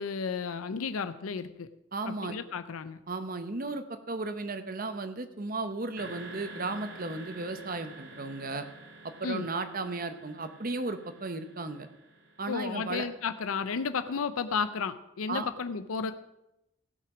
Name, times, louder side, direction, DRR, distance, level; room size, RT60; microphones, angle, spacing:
voice 1, 0.0-1.7 2.1-3.0 9.2-9.5 12.5-16.1, left 5 dB, 85° left, 11 dB, 0.5 m, -33 dB
voice 2, 1.9-2.4 3.1-8.6 9.0-11.9 12.4-13.1 15.3-15.5, right 3 dB, 40° right, 10 dB, 0.9 m, -35 dB
sound 1, 6.0-13.8, right 2 dB, 65° right, 3.4 m, -49 dB
16.5 x 5.8 x 6.1 m, 0.90 s
head